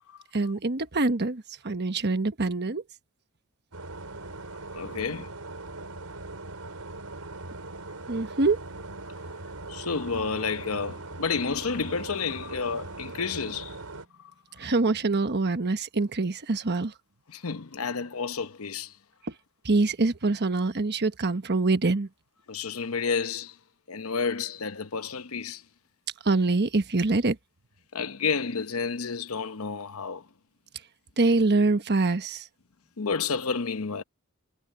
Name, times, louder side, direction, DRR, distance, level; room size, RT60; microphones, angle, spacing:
voice 1, 0.3-2.8 8.1-8.6 14.6-16.9 19.2-19.3 19.6-22.1 26.2-27.4 31.2-32.5, right 3 dB, 50° right, 1.2 m, -25 dB
sound 1, 3.7-14.1, right 2 dB, 80° right, 4.5 m, -40 dB
voice 2, 4.7-5.3 9.7-13.8 17.3-18.9 22.5-23.5 23.9-25.6 27.9-30.2 33.0-34.0, left 5 dB, 70° left, 0.9 m, -30 dB
head